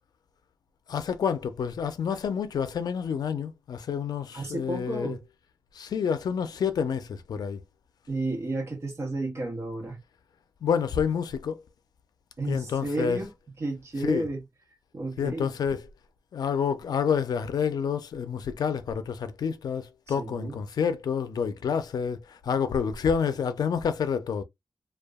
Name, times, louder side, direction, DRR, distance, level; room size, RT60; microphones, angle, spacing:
voice 1, 0.9-5.2 5.7-7.6 10.6-11.6 12.5-13.2 14.0-14.3 15.2-15.8 16.3-24.4, left 7 dB, 85° left, 0.4 m, -28 dB
voice 2, 4.3-5.2 8.1-10.0 12.4-13.3 13.6-14.4 14.9-15.6 20.1-20.6, right 2 dB, 45° right, 1.1 m, -32 dB
2.7 x 2.2 x 2.2 m
wide cardioid pair, 165°, 7 cm